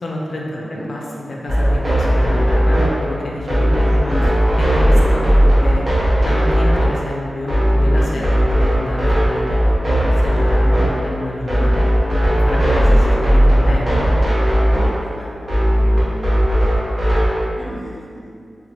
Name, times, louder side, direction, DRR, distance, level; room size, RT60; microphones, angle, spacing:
voice 1, 0.0-4.2 4.6-5.2 5.6-5.8 6.2-9.5 9.9-11.7 12.3-14.1, left 1 dB, 65° left, -3 dB, 0.4 m, -28 dB
voice 2, 0.6-0.9 3.8-4.3 4.7-5.0 5.4-5.7 12.8-13.1 14.7-15.4 15.9-16.0 17.6-18.3, equal, ahead, -6 dB, 0.7 m, -33 dB
sound 1, 1.5-17.4, equal, 55° right, 0.8 m, -16 dB
2.8 x 2.1 x 2.8 m, 2.4 s
cardioid pair, 55°, 0 cm